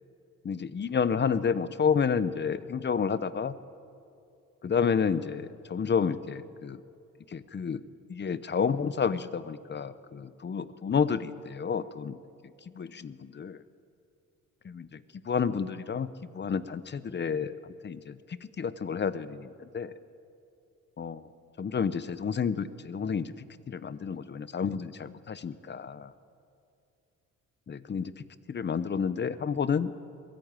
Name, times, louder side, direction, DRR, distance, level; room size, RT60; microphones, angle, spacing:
voice 1, 0.4-3.5 4.6-6.8 7.3-7.8 8.1-12.1 12.7-13.6 14.6-16.1 16.3-20.0 21.0-21.2 21.6-23.3 23.7-26.1 27.7-28.1 28.5-29.9, left 6 dB, 30° left, 15 dB, 0.8 m, -30 dB
22.0 x 16.0 x 9.0 m, 2.6 s
cardioid pair, 120°, 33 cm